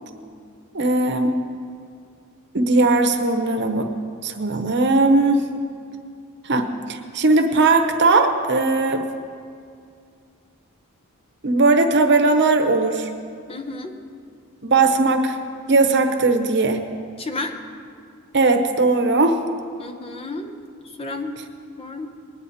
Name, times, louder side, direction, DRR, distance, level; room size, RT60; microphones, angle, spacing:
voice 1, 0.7-1.4 2.5-3.9 4.2-5.5 6.4-9.0 11.4-13.1 14.6-15.4 15.7-16.8 18.3-19.3, right 3 dB, 55° right, 6 dB, 1.0 m, -18 dB
voice 2, 13.5-13.9 17.2-17.5 19.8-20.6 21.0-21.4 21.8-22.1, left 3 dB, 25° left, 5 dB, 0.9 m, -31 dB
20.5 x 9.6 x 4.3 m, 2.3 s
head